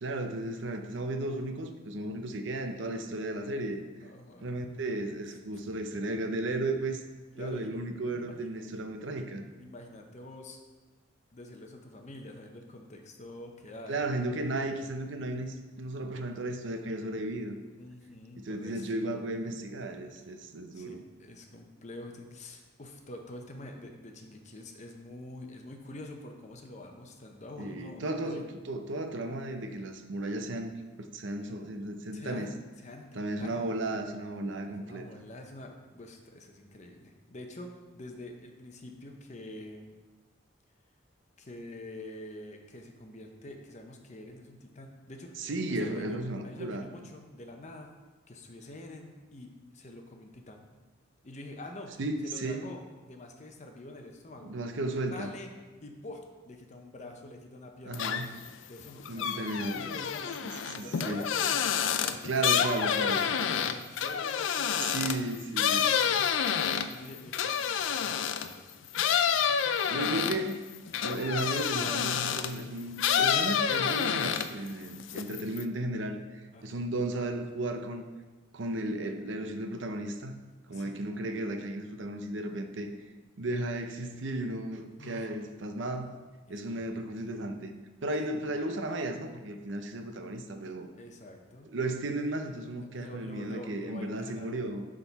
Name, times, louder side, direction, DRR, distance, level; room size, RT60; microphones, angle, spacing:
voice 1, 0.0-3.8 4.4-7.0 7.4-9.5 13.9-17.6 18.4-21.0 27.6-32.5 33.1-35.1 45.4-46.9 52.0-52.6 54.4-55.3 57.9-58.3 59.1-60.0 60.4-61.3 62.2-63.3 64.9-65.9 69.9-70.6 71.0-78.1 78.5-80.4 80.7-82.9 83.4-86.1 86.5-87.7 88.0-90.9 91.7-94.9, right 2 dB, 65° right, 6 dB, 0.6 m, -34 dB
voice 2, 4.0-4.5 7.3-7.8 8.4-8.5 9.6-10.6 11.3-14.0 17.8-18.9 20.7-28.4 32.1-33.7 34.7-40.0 41.4-48.0 48.3-50.7 51.2-52.0 52.2-54.5 55.1-55.5 55.8-58.2 58.6-59.4 59.7-62.6 63.0-65.2 65.7-66.4 66.6-68.9 69.3-70.0 76.5-76.8 80.7-81.0 85.0-85.4 86.5-87.4 88.3-88.4 91.0-91.7 92.8-94.7, left 1 dB, 35° left, 3 dB, 0.8 m, -46 dB
sound 1, 57.9-58.5 58.8-68.5 68.9-72.6 73.0-74.7 75.0-75.6, left 8 dB, 70° left, 0.4 m, -28 dB
10.0 x 3.8 x 4.1 m, 1.3 s
head